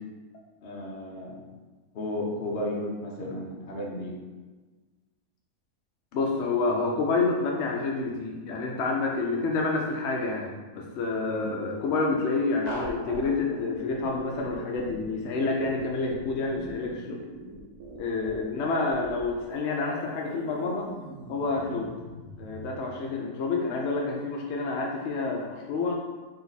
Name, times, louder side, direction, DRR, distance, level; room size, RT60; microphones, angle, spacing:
voice 1, 0.6-1.4 1.9-4.2 11.3-11.5, left 1 dB, 50° left, -2 dB, 0.8 m, -33 dB
voice 2, 6.1-10.5 10.7-17.2 18.0-20.9 21.3-21.9 22.4-26.0, left 3 dB, 80° left, -1 dB, 0.6 m, -28 dB
sound 1, 12.7-22.9, right 1 dB, 70° right, 1.2 m, -42 dB
3.9 x 2.5 x 4.0 m, 1.3 s
omnidirectional pair, 1.7 m